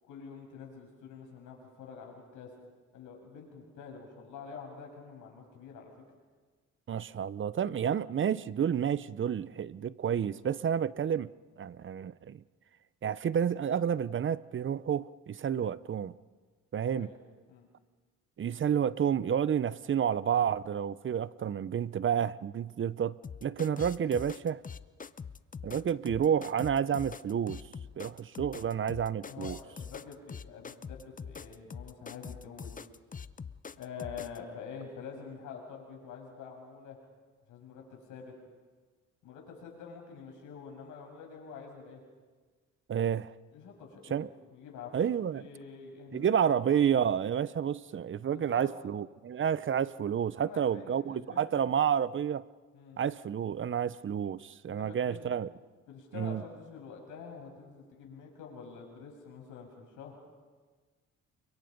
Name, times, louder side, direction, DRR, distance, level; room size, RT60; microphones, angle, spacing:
voice 1, 0.0-2.5 2.9-5.9 16.9-17.2 17.5-17.7 29.3-32.7 33.8-37.0 37.5-38.3 39.2-42.0 43.5-44.9 45.3-46.6 48.3-48.7 50.3-51.5 52.7-53.0 54.7-55.3 55.9-60.2, left 6 dB, 90° left, 6.7 m, -47 dB
voice 2, 6.9-11.3 11.6-12.4 13.0-16.1 16.7-17.1 18.4-24.6 25.6-27.6 28.0-29.6 42.9-43.3 44.1-44.3 44.9-45.5 46.1-52.4 53.0-55.5 56.1-56.4, right 8 dB, 40° right, 0.7 m, -30 dB
sound 1, 23.2-34.4, left 6 dB, 25° left, 0.8 m, -43 dB
29.5 x 25.0 x 5.3 m
cardioid pair, 90°, 30 cm